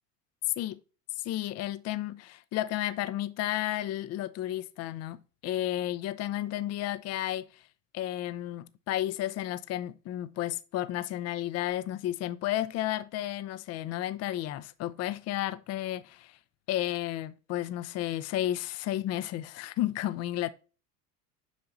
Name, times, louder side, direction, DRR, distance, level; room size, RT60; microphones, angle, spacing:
voice 1, 1.2-7.6 7.9-16.4 16.7-20.5, left 13 dB, 35° left, 0.6 m, -32 dB
8.1 x 5.6 x 2.6 m
hypercardioid pair, 80°, 48 cm